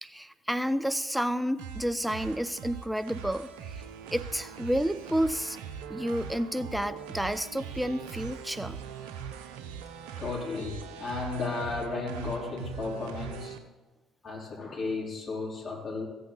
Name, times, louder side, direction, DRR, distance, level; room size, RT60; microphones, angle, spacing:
voice 1, 0.0-3.8 4.1-5.6 5.9-8.8, equal, 5° right, 13 dB, 0.6 m, -30 dB
sound 1, 1.6-13.6, right 7 dB, 75° right, 0.8 m, -41 dB
voice 2, 10.1-13.6 14.2-16.1, left 4 dB, 40° left, -2 dB, 4.3 m, -34 dB
15.0 x 8.3 x 4.1 m, 1.1 s
hypercardioid pair, 50°, 0 cm